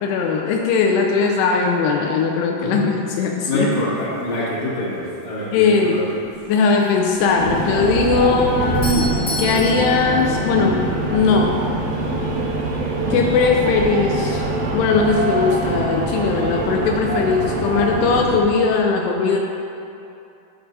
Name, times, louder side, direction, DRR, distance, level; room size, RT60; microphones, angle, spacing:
voice 1, 0.0-3.7 5.5-6.0 6.5-10.9 11.1-11.6 13.1-14.4 14.7-19.4, left 4 dB, 85° left, 1 dB, 2.6 m, -19 dB
voice 2, 3.4-6.2, left 1 dB, 50° left, -7 dB, 2.7 m, -25 dB
sound 1, 5.8-6.3 6.9-9.2, right 4 dB, 90° right, 3.0 m, -29 dB
sound 2, 7.4-18.4, right 2 dB, 70° right, 2.6 m, -24 dB
Doorbell, 8.6-11.2, left 1 dB, 70° left, 1.0 m, -31 dB
10.5 x 9.1 x 2.6 m, 2.7 s
omnidirectional pair, 4.7 m